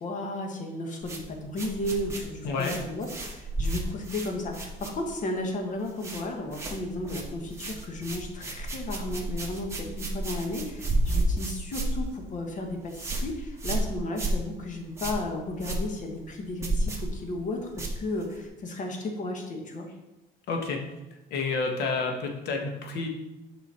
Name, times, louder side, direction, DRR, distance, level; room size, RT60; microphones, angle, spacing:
voice 1, 0.0-19.9, left 2 dB, 50° left, 3 dB, 1.6 m, -34 dB
sound 1, 1.0-5.4 5.6-6.2 6.5-18.5, right 1 dB, 15° right, 1.5 m, -32 dB
voice 2, 2.4-2.8 20.5-20.8 21.3-23.1, left 4 dB, 75° left, 3 dB, 1.5 m, -29 dB
7.5 x 5.5 x 4.3 m, 0.97 s
cardioid pair, 110°, 17 cm